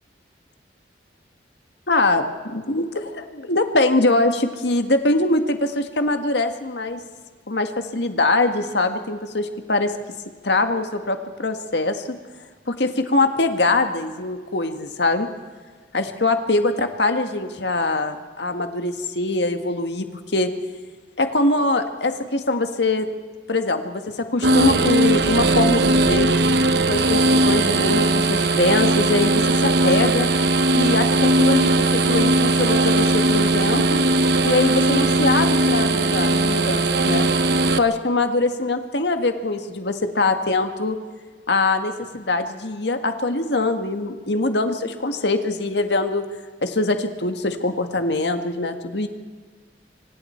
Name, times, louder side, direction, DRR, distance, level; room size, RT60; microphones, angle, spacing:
voice 1, 1.9-7.0 7.5-9.9 10.4-12.1 12.7-15.3 15.9-20.1 20.3-20.5 21.2-23.1 23.5-26.3 26.9-30.3 30.7-34.0 34.4-37.2 37.8-41.0 41.5-46.2 46.6-49.1, left 2 dB, 70° left, 7 dB, 1.7 m, -23 dB
sound 1, 24.4-37.8, right 2 dB, 65° right, 0.9 m, -18 dB
26.0 x 25.0 x 4.5 m, 1.5 s
head